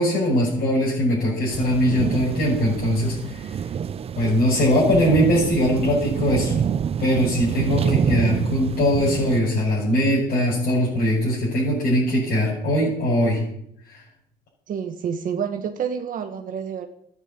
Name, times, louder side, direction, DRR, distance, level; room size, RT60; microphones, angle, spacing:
voice 1, 0.0-3.5 4.2-6.5 7.0-13.4 13.9-14.0, equal, 60° left, -6 dB, 6.2 m, -21 dB
sound 1, 1.5-9.4, right 7 dB, 35° right, 0.6 m, -27 dB
voice 2, 7.8-8.6 14.7-16.9, right 7 dB, 55° right, 6 dB, 1.3 m, -29 dB
12.5 x 9.4 x 8.7 m, 0.72 s
cardioid pair, 110°, 17 cm